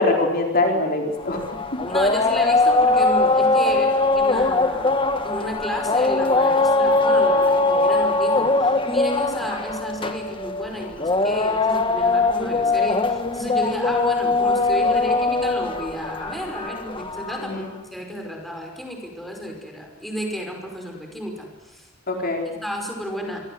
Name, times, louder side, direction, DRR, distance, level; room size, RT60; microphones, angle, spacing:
voice 1, 0.0-1.4 17.4-17.7 22.1-22.5, left 2 dB, 45° left, 2 dB, 4.3 m, -22 dB
sound 1, 1.2-17.6, left 3 dB, 25° left, 1.6 m, -21 dB
voice 2, 1.9-21.9 22.5-23.4, equal, ahead, 2 dB, 5.4 m, -32 dB
26.5 x 24.5 x 7.9 m, 1.1 s
head